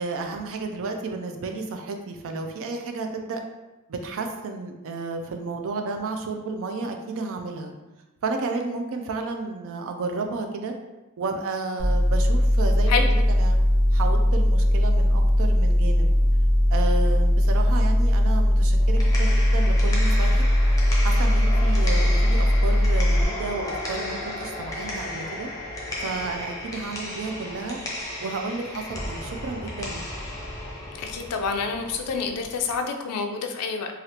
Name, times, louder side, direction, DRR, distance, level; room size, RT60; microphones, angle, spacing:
voice 1, 0.0-3.4 3.9-7.7 8.2-10.7 11.2-13.6 13.9-16.1 16.7-20.4 21.0-25.5 26.0-27.8 28.2-30.0, right 3 dB, 65° right, 4 dB, 0.4 m, -32 dB
sound 1, 11.8-23.2, equal, 85° right, 0.9 m, -19 dB
sound 2, 18.8-32.8, left 1 dB, 15° left, 0.6 m, -34 dB
voice 2, 31.0-33.9, left 5 dB, 85° left, 4 dB, 0.4 m, -27 dB
3.3 x 2.4 x 2.8 m, 1.1 s
head